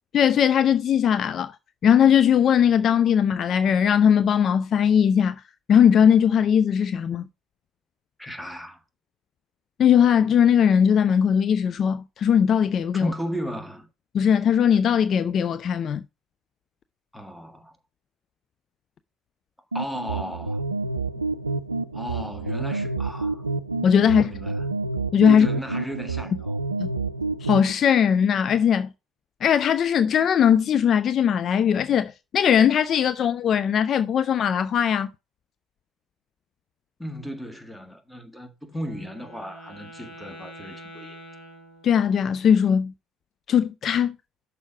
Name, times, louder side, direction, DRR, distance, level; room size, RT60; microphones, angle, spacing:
voice 1, 0.1-1.5 1.8-5.4 5.7-7.2 9.8-13.1 14.1-16.0 23.8-24.3 25.1-25.5 26.8-26.9 27.4-28.9 29.4-35.1 41.8-42.9 43.5-44.1, left 8 dB, 45° left, 0.4 m, -19 dB
voice 2, 8.2-8.8 13.0-13.9 17.1-17.8 19.7-20.6 21.9-23.5 24.0-24.7 25.2-26.6 37.0-41.2, equal, 5° left, 1.7 m, -35 dB
sound 1, 19.7-27.7, right 3 dB, 85° right, 0.3 m, -29 dB
Wind instrument woodwind instrument, 38.7-42.4, equal, 60° left, 2.5 m, -45 dB
6.3 x 4.7 x 5.7 m
figure-of-eight pair, 55°, 0 cm